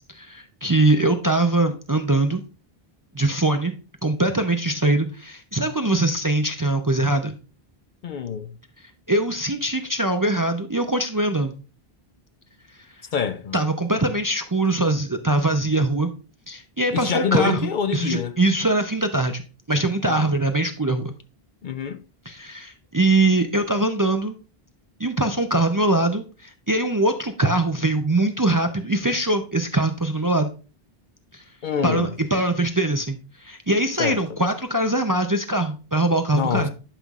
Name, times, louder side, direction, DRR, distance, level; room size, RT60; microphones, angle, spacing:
voice 1, 0.1-2.4 3.1-3.7 4.0-7.3 9.1-11.5 13.5-16.1 16.5-19.4 19.7-21.1 22.3-24.3 25.0-30.5 31.3-31.4 31.8-36.7, right 2 dB, 25° right, 0.5 m, -22 dB
voice 2, 8.0-8.5 13.1-13.6 16.9-18.4 20.1-20.3 21.6-22.0 31.6-32.1 34.0-34.2 36.3-36.7, left 7 dB, 60° left, 0.6 m, -25 dB
11.5 x 5.6 x 2.4 m
omnidirectional pair, 1.0 m